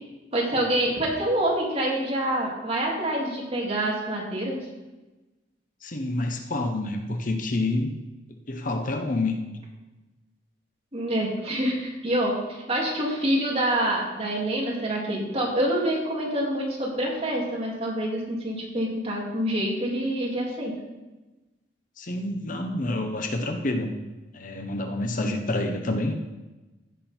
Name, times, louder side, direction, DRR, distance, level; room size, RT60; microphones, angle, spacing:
voice 1, 0.3-4.6 10.9-20.7 25.2-25.3, right 1 dB, 35° right, -3 dB, 2.7 m, -26 dB
voice 2, 5.8-7.9 8.5-9.4 22.0-23.9 24.3-26.1, left 2 dB, 45° left, 5 dB, 1.0 m, -28 dB
16.0 x 6.1 x 4.5 m, 1.1 s
head